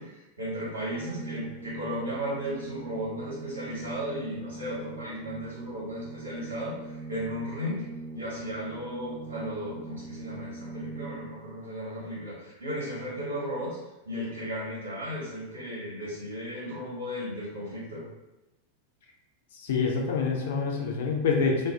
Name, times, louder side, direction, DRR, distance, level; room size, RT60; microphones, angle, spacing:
voice 1, 0.0-7.8 8.1-13.8 14.0-18.0, equal, 75° right, -6 dB, 1.4 m, -35 dB
Organ, 0.9-11.6, right 3 dB, 35° right, 0.5 m, -42 dB
voice 2, 19.6-21.7, left 5 dB, 55° left, 0 dB, 0.5 m, -26 dB
2.4 x 2.3 x 3.2 m, 0.99 s
figure-of-eight pair, 90°, 0 cm